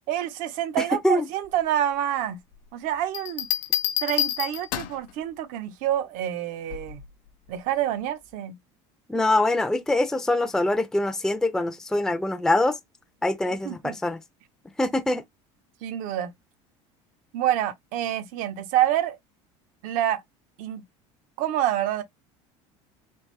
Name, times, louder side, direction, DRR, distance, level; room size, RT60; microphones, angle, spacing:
voice 1, 0.1-2.4 2.7-3.5 4.0-7.0 7.5-8.5 13.6-14.0 15.8-16.3 17.3-19.2 19.8-20.2 20.6-20.8 21.4-22.0, right 11 dB, 65° right, 0.9 m, -27 dB
voice 2, 0.8-1.2 9.1-12.8 13.2-14.2 14.8-15.2, left 2 dB, 5° left, 0.5 m, -24 dB
Bell, 3.1-5.1 6.7-7.0, left 12 dB, 65° left, 0.7 m, -28 dB
3.6 x 2.5 x 3.2 m
supercardioid pair, 100°, 15 cm